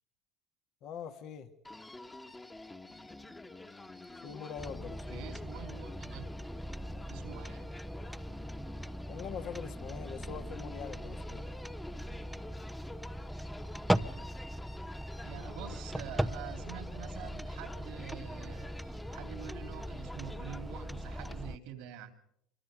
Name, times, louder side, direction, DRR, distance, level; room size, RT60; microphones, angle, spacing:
voice 1, 0.8-1.5 4.2-5.2 9.1-11.5, left 7 dB, 60° left, 7 dB, 1.8 m, -43 dB
Human voice, 1.6-21.5, left 2 dB, 15° left, 1.6 m, -49 dB
sound 1, 4.6-21.6, equal, 5° right, 0.8 m, -39 dB
voice 2, 5.1-6.3 7.1-7.7 10.3-10.4 15.2-22.1, right 10 dB, 70° right, 8 dB, 2.8 m, -47 dB
26.5 x 24.5 x 5.2 m, 0.73 s
hypercardioid pair, 70°, 0 cm